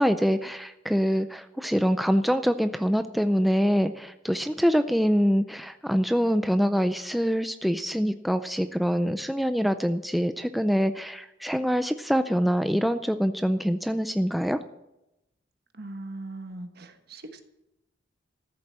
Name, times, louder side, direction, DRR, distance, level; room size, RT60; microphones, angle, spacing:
voice 1, 0.0-14.6, equal, ahead, 9 dB, 0.4 m, -25 dB
voice 2, 15.7-17.4, right 2 dB, 55° right, 7 dB, 1.4 m, -40 dB
14.0 x 7.9 x 7.5 m, 0.90 s
head